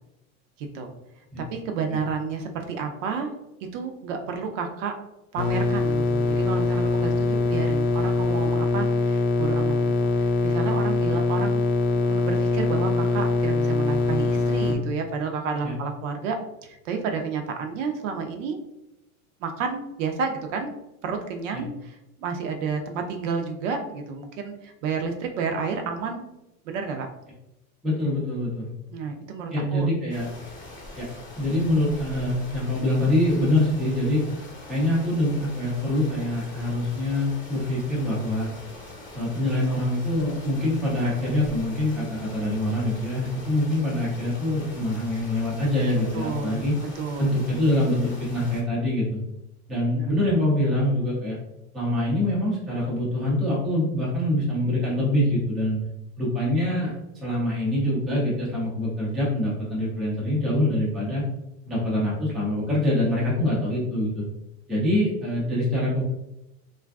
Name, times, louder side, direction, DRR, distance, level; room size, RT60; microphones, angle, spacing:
voice 1, 0.6-0.9 1.4-3.3 3.7-5.0 5.3-11.6 11.9-18.6 19.4-20.7 21.0-26.2 26.6-27.1 28.9-29.9 46.1-46.6 47.0-47.3 50.0-50.1, right 5 dB, 60° right, 5 dB, 0.5 m, -31 dB
sound 1, 5.4-14.8, left 3 dB, 65° left, 0.5 m, -23 dB
voice 2, 27.8-28.7 29.5-30.3 31.0-31.1 31.4-34.2 34.7-38.5 39.1-46.7 47.2-49.2 49.7-51.4 51.7-55.9 56.2-56.9 57.2-61.2 61.7-64.3 64.7-66.0, left 1 dB, ahead, -7 dB, 0.3 m, -24 dB
sound 2, 30.1-48.6, left 2 dB, 25° left, 0.8 m, -43 dB
2.4 x 2.3 x 2.3 m, 0.89 s
supercardioid pair, 130°, 44 cm